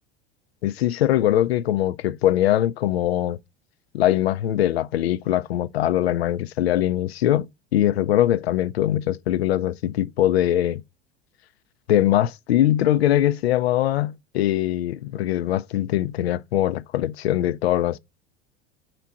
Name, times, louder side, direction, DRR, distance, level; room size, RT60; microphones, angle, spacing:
voice 1, 0.6-3.4 3.9-10.8 11.9-18.0, left 12 dB, 65° left, 0.6 m, -22 dB
5.1 x 4.5 x 6.1 m
figure-of-eight pair, 80°, 34 cm